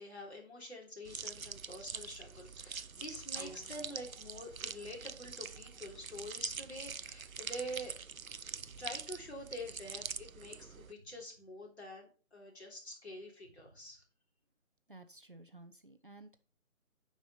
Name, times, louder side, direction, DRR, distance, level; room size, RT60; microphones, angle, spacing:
voice 1, 0.0-7.9 8.8-14.0, equal, 50° left, 0 dB, 3.5 m, -46 dB
sound 1, 1.0-10.9, right 6 dB, 85° right, 0.6 m, -44 dB
sound 2, 3.3-9.1 9.7-9.8, equal, 20° left, 1.2 m, -60 dB
voice 2, 14.9-16.4, right 2 dB, 40° right, 8 dB, 0.8 m, -55 dB
9.1 x 4.9 x 5.4 m, 0.39 s
figure-of-eight pair, 160°, 41 cm